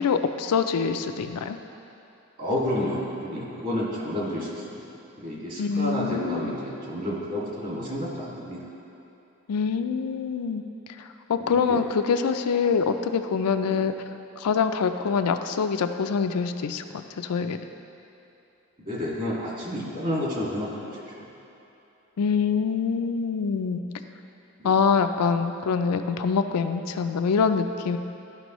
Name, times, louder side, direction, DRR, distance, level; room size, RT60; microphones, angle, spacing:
voice 1, 0.0-1.6 5.6-6.6 9.5-10.6 11.0-13.9 14.4-17.6 22.2-23.8 24.6-28.0, left 5 dB, 90° left, 8 dB, 0.4 m, -25 dB
voice 2, 2.4-4.8 5.2-8.6 11.4-11.8 13.7-13.9 18.8-21.3 24.6-24.7, left 1 dB, 40° right, -5 dB, 1.9 m, -30 dB
13.0 x 5.3 x 3.1 m, 2.9 s
head